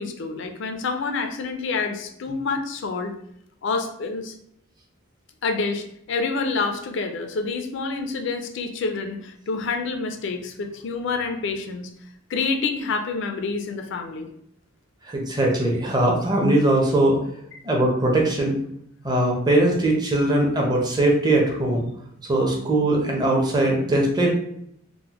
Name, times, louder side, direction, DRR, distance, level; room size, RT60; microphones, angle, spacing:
voice 1, 0.0-3.1 3.6-4.3 5.4-11.9 12.3-14.3 17.5-17.6, left 4 dB, 65° left, 5 dB, 0.4 m, -28 dB
voice 2, 15.1-17.2 17.6-18.6 19.0-21.8 22.3-24.3, right 1 dB, 20° right, -1 dB, 0.7 m, -20 dB
3.7 x 2.1 x 2.9 m, 0.72 s
head